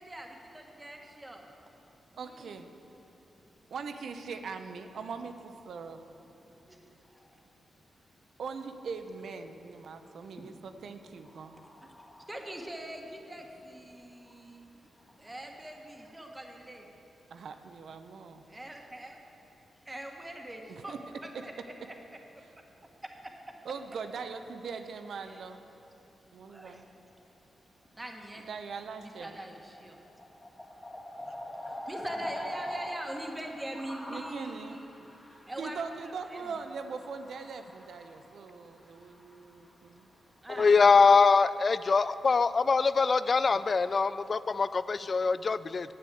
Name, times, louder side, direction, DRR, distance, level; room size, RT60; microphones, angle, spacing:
voice 1, 0.0-1.5 2.1-2.6 6.7-6.8 11.8-11.9 12.3-14.7 15.2-16.9 18.5-19.2 19.8-20.9 21.2-21.5 21.8-22.2 23.0-23.5 25.2-25.4 26.5-26.8 28.0-28.4 29.0-30.0 31.2-31.3 31.9-34.9 35.5-35.8 36.3-36.4 40.4-40.7 41.1-41.2, right 1 dB, 15° right, 2 dB, 1.4 m, -43 dB
voice 2, 2.2-2.7 3.7-6.1 8.4-11.5 17.3-18.5 20.7-21.0 23.6-25.6 26.3-26.9 28.4-29.4 34.1-34.8 35.6-40.1, right 5 dB, 75° right, 7 dB, 0.7 m, -41 dB
voice 3, 10.1-10.4 11.5-12.3 30.2-33.0 33.8-34.3 35.0-35.5 38.0-38.3 38.7-39.7, left 1 dB, 25° left, -6 dB, 2.3 m, -42 dB
voice 4, 40.6-45.9, left 4 dB, 40° left, 15 dB, 0.3 m, -23 dB
10.5 x 8.3 x 7.7 m, 3.0 s
cardioid pair, 100°, 0 cm